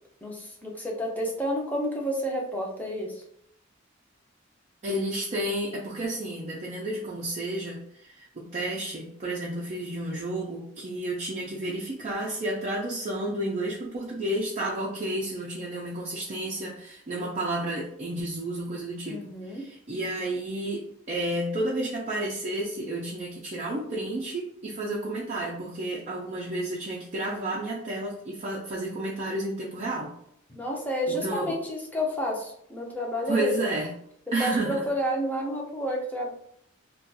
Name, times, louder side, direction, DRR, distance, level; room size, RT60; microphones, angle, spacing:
voice 1, 0.2-3.2 19.1-19.7 24.8-25.0 30.5-33.6 34.4-36.3, equal, 10° left, -2 dB, 0.6 m, -30 dB
voice 2, 4.8-19.2 19.5-30.1 31.1-31.6 33.3-33.9 34.3-34.8, right 1 dB, 35° right, -4 dB, 0.5 m, -31 dB
2.4 x 2.3 x 3.9 m, 0.71 s
head